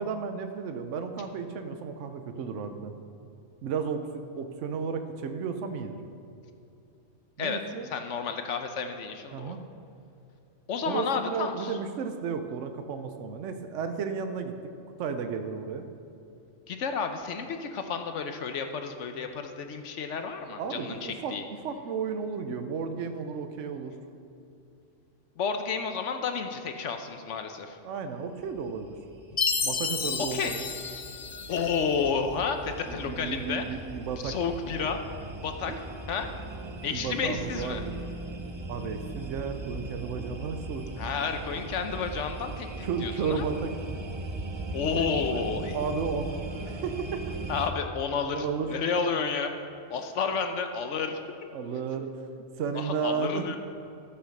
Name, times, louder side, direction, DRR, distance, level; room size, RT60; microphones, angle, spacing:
voice 1, 0.0-3.0 3.6-5.9 7.4-7.9 9.3-9.6 10.8-14.5 15.0-15.8 20.5-23.9 27.8-28.9 29.6-30.7 32.9-34.4 35.7-35.8 36.9-38.0 38.7-40.9 42.8-43.7 44.9-45.0 45.4-45.5 45.7-46.4 46.7-47.2 48.2-48.7 51.5-52.1 52.6-53.6, right 5 dB, 75° right, 7 dB, 1.0 m, -33 dB
voice 2, 7.9-9.6 10.7-11.8 16.7-21.4 25.4-27.8 30.3-30.5 31.5-33.6 34.2-35.0 35.4-35.7 36.1-36.3 36.8-37.8 41.0-43.4 44.7-45.8 47.5-49.5 49.9-51.2 52.7-53.6, left 5 dB, 75° left, 7 dB, 1.0 m, -31 dB
sound 1, 28.4-47.7, right 2 dB, 35° right, 0.5 m, -39 dB
Chime, 29.4-31.8, left 6 dB, 45° left, 0.5 m, -31 dB
13.0 x 5.8 x 6.5 m, 2.7 s
omnidirectional pair, 1.3 m